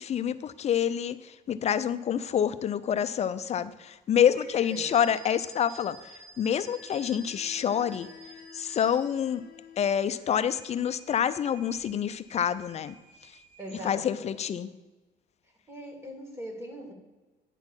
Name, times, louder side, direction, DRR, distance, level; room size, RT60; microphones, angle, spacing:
voice 1, 0.0-8.1 8.5-9.4 9.8-12.9 13.8-14.7, left 9 dB, 40° left, 14 dB, 0.5 m, -27 dB
sound 1, 4.3-9.5 10.0-14.2, right 2 dB, 90° right, 1.8 m, -51 dB
voice 2, 4.7-5.0 13.6-14.3 15.7-16.9, equal, 15° right, 3 dB, 2.2 m, -41 dB
sound 2, 6.4-9.9, left 8 dB, 65° left, 1.0 m, -52 dB
9.7 x 4.2 x 7.2 m, 1.2 s
cardioid pair, 110°, 17 cm